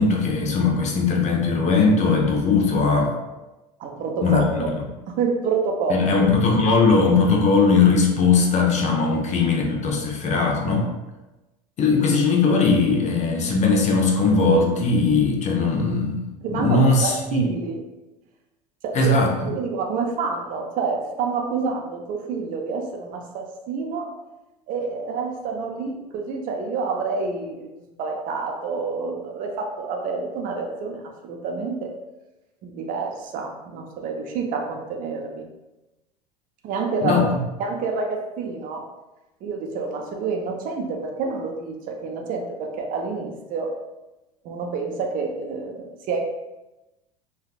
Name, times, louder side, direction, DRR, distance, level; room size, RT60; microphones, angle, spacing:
voice 1, 0.0-3.1 4.2-4.6 5.9-10.9 11.8-16.2 16.5-17.4 18.9-19.5 37.0-37.4, left 4 dB, 35° left, 1 dB, 0.6 m, -19 dB
voice 2, 3.8-4.7 5.1-6.1 16.4-17.8 18.8-19.1 19.4-24.1 24.7-27.7 28.0-31.9 32.6-35.5 36.6-37.2 37.6-38.8 39.4-43.7 44.4-46.2, right 4 dB, 45° right, 2 dB, 0.5 m, -28 dB
3.2 x 2.3 x 2.4 m, 1.0 s
hypercardioid pair, 75°, 20 cm